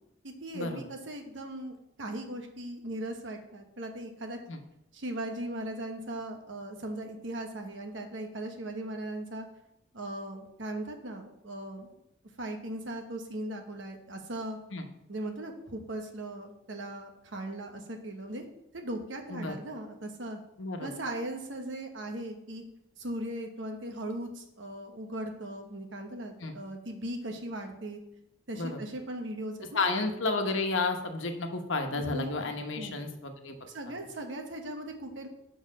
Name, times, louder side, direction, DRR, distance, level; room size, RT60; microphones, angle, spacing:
voice 1, 0.2-4.4 4.9-9.5 9.9-11.9 12.4-14.6 15.1-18.4 18.7-20.4 20.8-22.6 23.0-28.0 28.5-30.0 31.9-32.3 32.7-33.0 33.7-35.3, right 1 dB, 75° right, 3 dB, 1.2 m, -38 dB
voice 2, 20.6-20.9 26.4-26.5 28.6-28.8 29.7-33.6, left 3 dB, 85° left, 5 dB, 1.1 m, -31 dB
6.6 x 4.8 x 6.2 m, 0.81 s
head